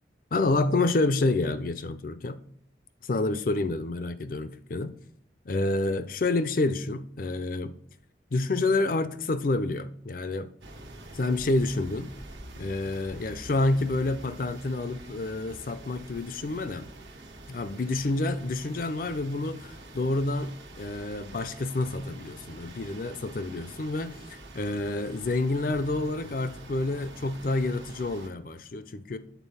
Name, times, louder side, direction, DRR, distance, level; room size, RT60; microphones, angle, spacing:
voice 1, 0.3-2.4 3.0-4.9 5.5-7.7 8.3-10.5 11.1-12.1 12.6-16.9 17.5-29.2, left 2 dB, 50° left, 0.5 m, -28 dB
sound 1, 10.6-28.3, right 1 dB, 75° right, 1.3 m, -46 dB
8.2 x 4.0 x 5.5 m
head